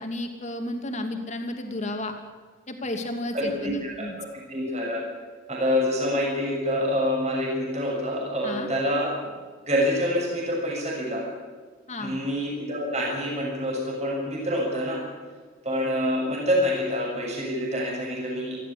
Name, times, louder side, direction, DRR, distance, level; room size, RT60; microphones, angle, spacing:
voice 1, 0.0-2.1 2.7-4.1 8.4-8.7 11.9-12.2, left 1 dB, 35° left, 4 dB, 2.9 m, -32 dB
voice 2, 3.3-4.1 4.5-5.0 5.5-9.1 9.7-11.3 12.0-15.0 15.6-18.6, equal, 35° right, -1 dB, 6.7 m, -26 dB
28.5 x 13.0 x 8.6 m, 1.6 s
head